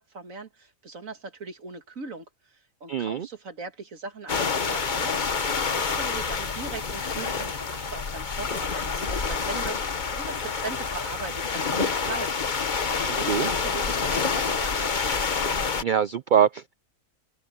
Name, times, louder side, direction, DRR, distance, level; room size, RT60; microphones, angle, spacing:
voice 1, 0.0-15.2, right 4 dB, 70° right, 2.4 m, -39 dB
voice 2, 2.9-3.3 13.1-13.5 15.8-16.7, right 8 dB, 90° right, 0.4 m, -24 dB
sound 1, 4.3-15.8, left 5 dB, 35° left, 1.1 m, -27 dB
open air
omnidirectional pair, 1.4 m